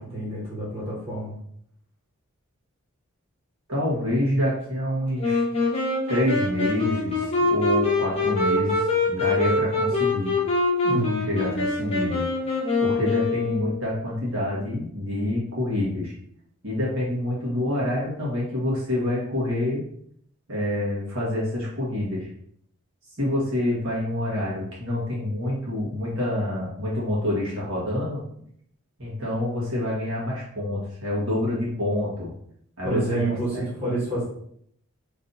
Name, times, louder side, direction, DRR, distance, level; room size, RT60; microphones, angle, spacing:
voice 1, 0.0-1.4 10.8-11.3 32.8-34.2, right 2 dB, 30° right, -8 dB, 1.4 m, -28 dB
voice 2, 3.7-5.4 6.1-10.3 11.3-12.3 12.8-16.1 16.6-19.8 20.5-22.3 23.2-28.2 29.0-32.3 32.8-33.9, left 1 dB, 60° right, -6 dB, 1.4 m, -27 dB
Wind instrument woodwind instrument, 5.2-13.9, left 3 dB, 25° left, 0.9 m, -24 dB
3.2 x 2.7 x 4.0 m, 0.68 s
head